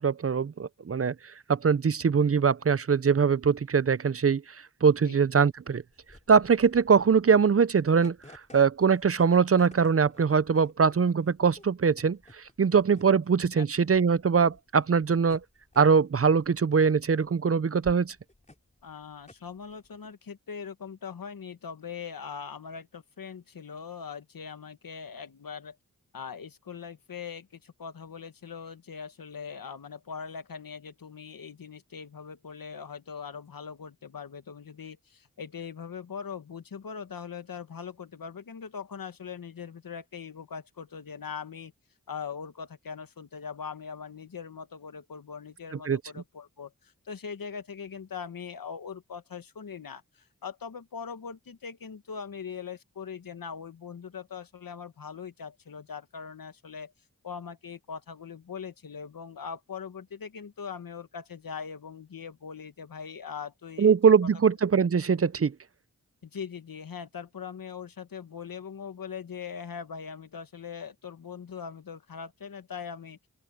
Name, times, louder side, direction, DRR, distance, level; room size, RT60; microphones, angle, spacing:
voice 1, 0.0-5.8 6.3-15.4 15.8-18.2 45.9-46.0 63.8-65.5, right 6 dB, 45° right, 0.6 m, -22 dB
sound 1, 5.6-20.1, left 1 dB, 20° left, 4.6 m, -53 dB
voice 2, 18.8-25.8 26.1-41.7 42.1-56.9 57.2-63.9 64.2-64.3 66.2-73.2, left 6 dB, 85° left, 1.4 m, -41 dB
open air
wide cardioid pair, 60°, 33 cm